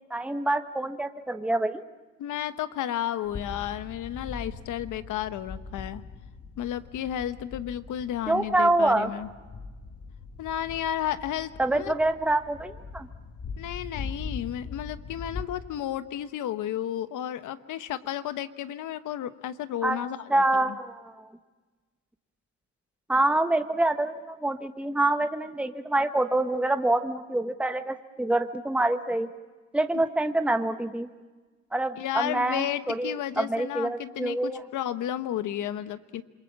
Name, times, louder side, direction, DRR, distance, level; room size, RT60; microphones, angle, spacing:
voice 1, 0.1-1.8 8.3-9.1 11.6-13.1 19.8-20.0 20.3-21.2 23.1-29.3 29.7-31.1 31.7-34.6, right 2 dB, 5° right, 7 dB, 1.2 m, -26 dB
voice 2, 2.2-6.0 6.6-9.3 10.4-12.0 13.6-20.8 29.9-30.0 32.0-36.2, left 11 dB, 80° left, 11 dB, 1.2 m, -32 dB
sound 1, 3.2-15.4, left 4 dB, 55° left, 2.4 m, -41 dB
27.5 x 22.5 x 7.4 m, 1.3 s
cardioid pair, 90°, 30 cm